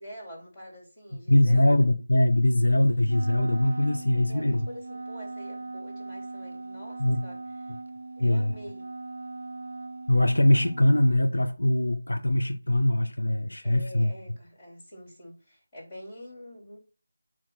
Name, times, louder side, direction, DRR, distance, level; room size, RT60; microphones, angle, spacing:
voice 1, 0.0-1.7 4.2-7.8 8.2-8.9 13.6-16.8, equal, 15° left, 3.7 m, -46 dB
voice 2, 1.3-4.6 7.0-7.2 8.2-8.5 10.1-14.1, left 1 dB, 85° left, 0.8 m, -22 dB
Wind instrument woodwind instrument, 3.0-11.2, right 3 dB, 70° right, 0.5 m, -40 dB
8.9 x 3.1 x 5.8 m
figure-of-eight pair, 170°, 0 cm